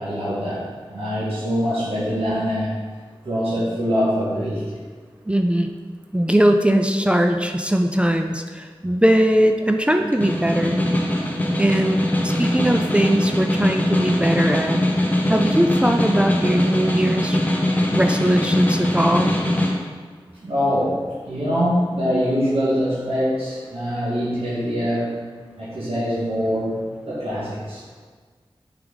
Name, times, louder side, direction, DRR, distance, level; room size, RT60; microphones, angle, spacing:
voice 1, 0.0-2.7 3.2-4.7 20.4-25.3 25.6-26.8 27.1-27.8, equal, 80° right, -11 dB, 1.8 m, -24 dB
voice 2, 5.3-5.7 6.1-10.8 11.6-17.4 17.9-19.4, right 1 dB, 10° right, 4 dB, 0.4 m, -20 dB
Snare drum, 10.0-19.8, left 1 dB, 15° left, 0.9 m, -21 dB
6.1 x 4.9 x 3.9 m, 1.5 s
wide cardioid pair, 60°, 10 cm